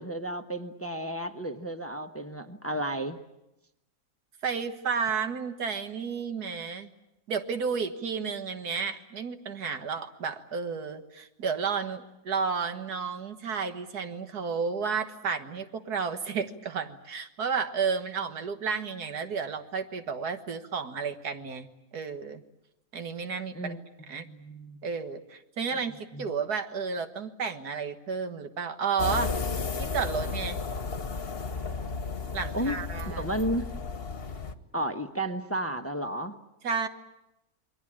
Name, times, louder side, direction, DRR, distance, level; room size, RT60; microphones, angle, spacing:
voice 1, 0.0-3.2 23.5-23.8 24.2-24.8 26.1-26.3 32.5-33.7 34.7-36.4, right 1 dB, 10° left, 7 dB, 1.0 m, -33 dB
voice 2, 4.4-6.9 7.3-21.7 21.9-22.4 22.9-23.8 24.1-24.3 24.8-29.3 29.8-30.6 32.3-33.3 36.6-36.9, right 5 dB, 85° right, 8 dB, 2.0 m, -32 dB
sound 1, 29.0-34.5, left 4 dB, 40° left, 1.4 m, -33 dB
28.5 x 22.0 x 8.7 m, 0.90 s
omnidirectional pair, 1.6 m